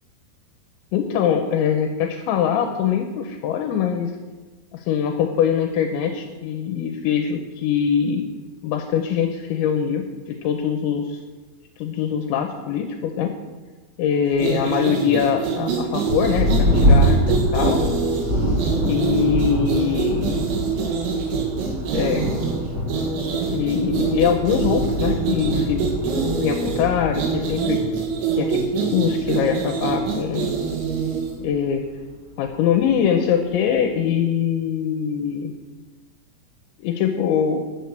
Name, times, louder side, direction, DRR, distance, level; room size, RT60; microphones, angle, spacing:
voice 1, 0.9-4.1 4.7-8.2 8.6-11.2 11.8-13.4 14.0-17.8 18.8-20.5 21.9-22.2 23.5-25.9 26.4-27.8 28.4-30.5 31.4-31.9 32.4-35.5 36.8-37.6, left 8 dB, 80° left, 4 dB, 3.0 m, -23 dB
sound 1, 14.3-31.4, right 5 dB, 80° right, 4.4 m, -25 dB
Thunder, 16.0-32.1 32.9-33.0 33.5-34.0, equal, 40° right, 1.6 m, -25 dB
11.0 x 8.0 x 6.8 m, 1.3 s
omnidirectional pair, 5.4 m